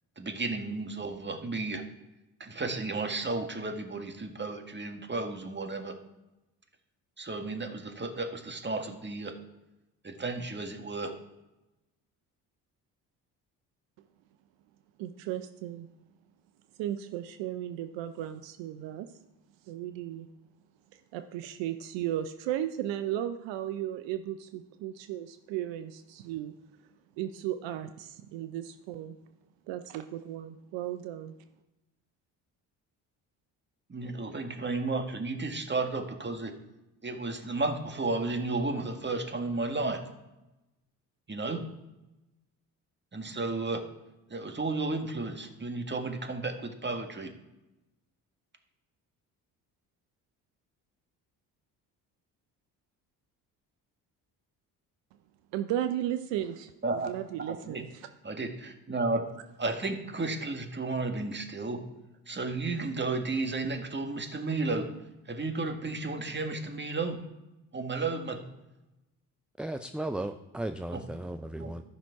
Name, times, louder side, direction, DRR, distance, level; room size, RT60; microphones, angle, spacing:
voice 1, 0.2-1.8 2.4-5.9 7.2-9.3 10.0-11.1 33.9-36.5 37.0-40.0 41.3-41.6 43.1-43.8 44.3-47.3 56.8-57.1 57.5-57.8 58.2-59.3 59.6-61.8 62.3-64.9 65.3-67.2 67.7-68.4 70.9-71.0 71.6-71.7, right 3 dB, 25° right, 5 dB, 1.8 m, -33 dB
voice 2, 15.0-15.9 16.8-19.1 19.7-20.3 21.1-26.5 27.2-29.2 29.7-31.3 55.5-58.1, right 11 dB, 70° right, 9 dB, 0.7 m, -35 dB
voice 3, 69.6-71.8, right 1 dB, ahead, 8 dB, 0.4 m, -35 dB
12.5 x 5.9 x 4.7 m, 0.97 s
hypercardioid pair, 55°, 46 cm